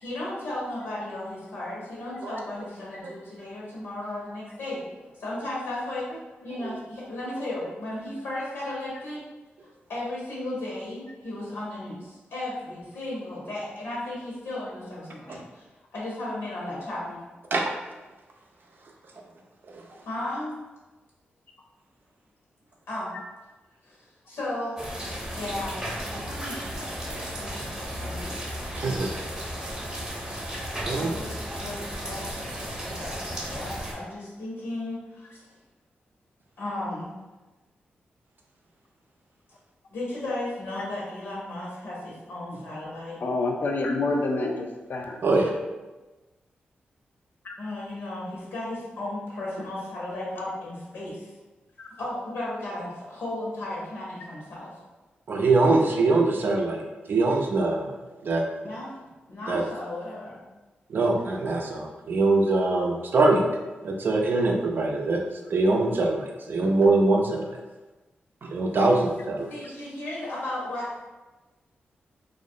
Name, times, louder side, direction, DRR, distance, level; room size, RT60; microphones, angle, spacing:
voice 1, 0.0-6.1 6.4-9.2 9.9-15.6 15.9-17.3 20.1-20.6 22.9-23.1 23.8-24.0 24.3-24.8 25.3-25.8 26.3-28.3 30.9-32.3 33.0-35.3 36.6-37.1 39.9-43.2 47.6-51.3 52.0-54.7 58.6-59.0 59.3-60.4 69.5-71.0, left 1 dB, 85° left, -6 dB, 0.8 m, -35 dB
sound 1, 24.8-33.9, equal, 20° right, 0.7 m, -34 dB
voice 2, 28.8-29.1 30.8-31.1 45.2-45.5 55.3-56.8 57.1-57.9 58.2-58.4 59.5-59.6 60.9-63.4 63.8-65.2 65.5-67.6 68.4-69.5, right 3 dB, 60° right, 0 dB, 0.4 m, -23 dB
voice 3, 43.2-45.2 47.4-47.5 51.8-51.9, left 2 dB, 55° left, 2 dB, 0.3 m, -27 dB
2.3 x 2.1 x 2.6 m, 1.2 s
cardioid pair, 55°, 4 cm